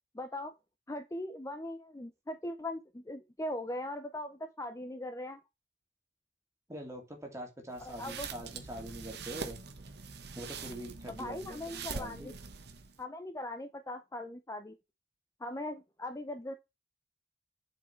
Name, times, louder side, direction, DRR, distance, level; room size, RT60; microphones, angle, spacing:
voice 1, 0.1-0.5 0.9-5.4 7.8-8.3 11.1-12.3 13.0-14.8 15.4-16.5, left 1 dB, 15° left, 0.6 m, -40 dB
voice 2, 6.7-9.6 10.3-11.6 11.9-12.4, equal, 15° right, 2.5 m, -44 dB
sound 1, 7.7-13.0, right 5 dB, 60° right, 1.2 m, -44 dB
7.5 x 4.8 x 4.4 m
head